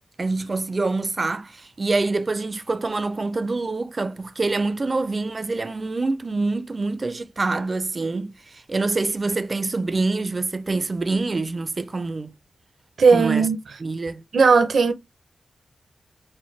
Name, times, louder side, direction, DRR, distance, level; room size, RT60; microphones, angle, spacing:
voice 1, 0.2-12.3 13.1-13.5 13.8-14.2, right 3 dB, 40° right, 0.5 m, -26 dB
voice 2, 13.0-13.6 14.3-14.9, right 5 dB, 80° right, 0.7 m, -16 dB
6.2 x 2.2 x 3.2 m
wide cardioid pair, 100°, 0 cm